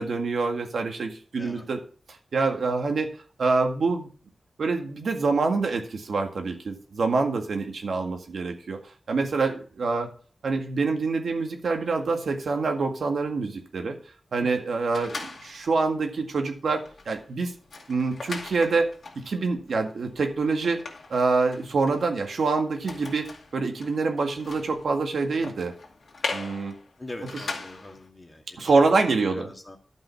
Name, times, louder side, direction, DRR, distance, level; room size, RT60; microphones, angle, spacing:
voice 1, 0.0-1.8 2.3-3.1 3.4-4.1 4.6-8.8 9.1-10.1 10.4-14.0 14.3-17.5 17.9-18.9 19.2-20.8 21.1-25.7 26.3-26.7 28.6-29.5, right 4 dB, 85° right, 3 dB, 1.9 m, -26 dB
voice 2, 14.4-14.7 27.0-29.8, left 1 dB, 20° left, 3 dB, 1.7 m, -42 dB
sound 1, 14.9-15.8 16.3-16.4 16.7-28.1, left 3 dB, 70° left, 2.3 m, -40 dB
11.5 x 5.5 x 5.8 m, 0.40 s
wide cardioid pair, 130°, 0 cm